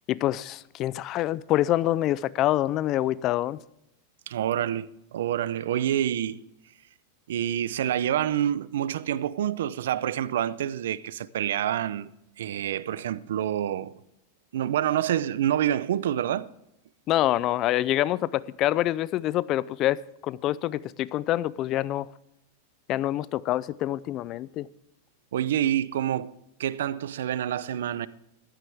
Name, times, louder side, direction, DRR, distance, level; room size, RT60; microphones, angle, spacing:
voice 1, 0.1-3.6 17.1-22.1 22.9-24.7, left 14 dB, 35° left, 0.4 m, -26 dB
voice 2, 4.3-6.4 7.3-12.1 12.4-13.9 14.5-16.5 25.3-26.3 26.6-28.1, right 11 dB, 80° right, 0.6 m, -27 dB
14.5 x 13.0 x 3.5 m
supercardioid pair, 140°, 0 cm